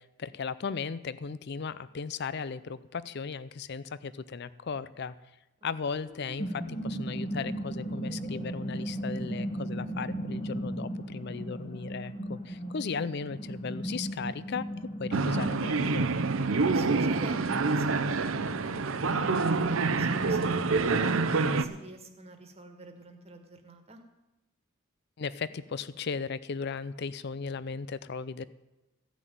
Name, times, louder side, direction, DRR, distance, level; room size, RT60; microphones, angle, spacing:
voice 1, 0.0-5.1 5.6-16.1 25.2-28.4, left 5 dB, 55° left, 16 dB, 0.5 m, -36 dB
sound 1, 5.9-20.2, right 1 dB, 30° left, 1.6 m, -37 dB
sound 2, 15.1-21.6, right 3 dB, 75° right, 0.7 m, -27 dB
voice 2, 16.5-24.0, right 2 dB, 30° right, 5 dB, 1.6 m, -46 dB
15.0 x 6.2 x 9.2 m, 0.98 s
head